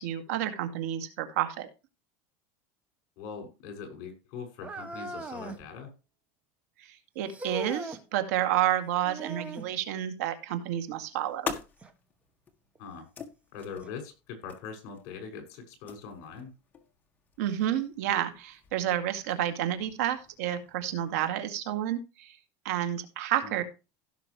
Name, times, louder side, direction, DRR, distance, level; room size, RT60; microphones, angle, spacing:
voice 1, 0.0-1.7 6.8-11.5 17.4-22.4 22.6-23.6, right 11 dB, 80° right, 8 dB, 2.2 m, -30 dB
voice 2, 3.2-5.9 12.8-13.1 13.5-16.5 23.4-23.6, left 6 dB, 55° left, 4 dB, 6.0 m, -42 dB
sound 1, 4.6-5.7 7.3-8.0 9.0-9.7 11.8-11.9 12.8-12.9 13.8-13.9, right 2 dB, 15° right, 1.1 m, -39 dB
sound 2, 10.7-21.1, left 6 dB, 20° left, 1.5 m, -45 dB
16.5 x 6.2 x 3.1 m, 0.28 s
supercardioid pair, 150°, 8 cm